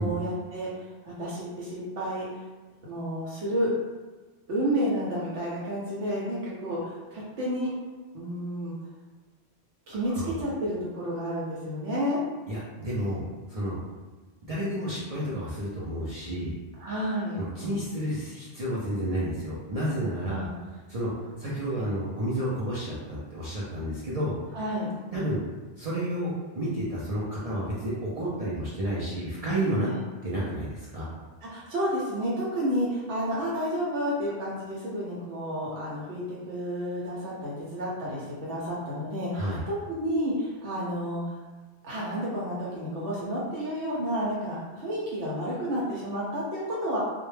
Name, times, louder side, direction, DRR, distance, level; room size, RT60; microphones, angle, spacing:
voice 1, 0.0-2.2 2.8-3.7 4.5-7.7 8.1-8.7 9.9-12.2 16.8-17.4 20.2-20.6 24.5-24.9 29.8-30.0 31.5-41.4 41.8-47.0, equal, 90° right, -6 dB, 0.9 m, -31 dB
voice 2, 12.5-13.2 13.5-13.8 14.5-16.5 17.3-20.5 20.9-21.1 21.4-24.4 25.1-25.4 25.8-29.9 30.2-31.1 39.3-39.6, right 1 dB, 55° right, -8 dB, 0.4 m, -30 dB
2.2 x 2.1 x 3.1 m, 1.3 s
omnidirectional pair, 1.1 m